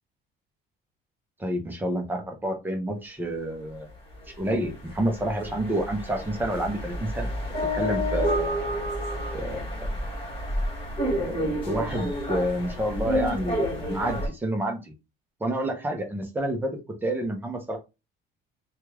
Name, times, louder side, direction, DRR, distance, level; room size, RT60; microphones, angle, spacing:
voice 1, 1.4-3.9 4.4-7.3 7.7-8.6 9.3-9.7 11.2-14.9 15.4-17.8, right 1 dB, 10° right, 3 dB, 0.6 m, -29 dB
sound 1, 4.1-4.2 4.5-14.3, equal, 25° left, 1.5 m, -30 dB
3.3 x 2.3 x 3.0 m, 0.26 s
cardioid pair, 170°, 20 cm